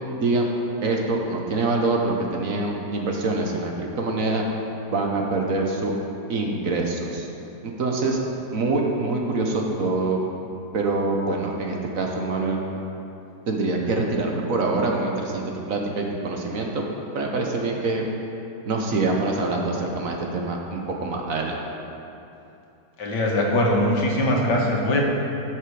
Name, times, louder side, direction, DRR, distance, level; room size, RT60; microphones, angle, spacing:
voice 1, 0.8-4.4 4.9-5.9 6.3-7.3 7.6-8.2 8.5-10.2 10.7-12.6 13.5-16.8 17.1-18.0 18.6-21.6, right 3 dB, 55° right, 0 dB, 1.2 m, -25 dB
voice 2, 23.0-25.0, left 1 dB, 80° left, -1 dB, 2.0 m, -21 dB
11.5 x 6.8 x 4.8 m, 2.8 s
omnidirectional pair, 1.9 m